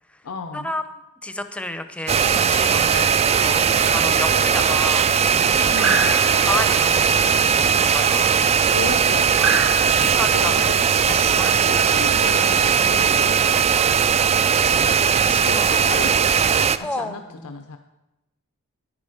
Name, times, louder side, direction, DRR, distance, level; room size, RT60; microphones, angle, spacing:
voice 1, 0.2-0.8 5.7-6.2 8.7-10.6 11.0-13.6 14.6-15.0 15.4-17.8, left 4 dB, 85° left, 6 dB, 0.7 m, -35 dB
voice 2, 1.2-5.1 6.4-8.4 9.9-10.7 11.1-11.6 15.0-15.9 16.8-17.1 17.4-17.5, left 1 dB, 5° left, 9 dB, 0.6 m, -31 dB
sound 1, 2.1-16.8, right 7 dB, 30° right, 0.3 m, -18 dB
sound 2, 2.8-12.6, right 4 dB, 60° right, 1.5 m, -32 dB
10.5 x 9.8 x 4.9 m, 0.96 s
head